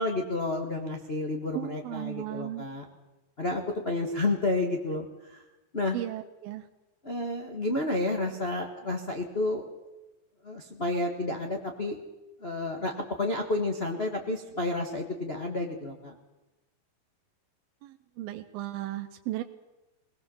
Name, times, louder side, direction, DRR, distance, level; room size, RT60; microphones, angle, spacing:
voice 1, 0.0-2.9 3.4-5.4 5.7-6.0 7.0-9.7 10.4-12.0 12.4-16.1, left 2 dB, 80° left, 2 dB, 0.5 m, -30 dB
voice 2, 1.5-2.7 5.9-6.6 17.8-19.4, right 15 dB, 85° right, 7 dB, 2.6 m, -36 dB
21.0 x 18.0 x 7.1 m, 1.0 s
omnidirectional pair, 4.2 m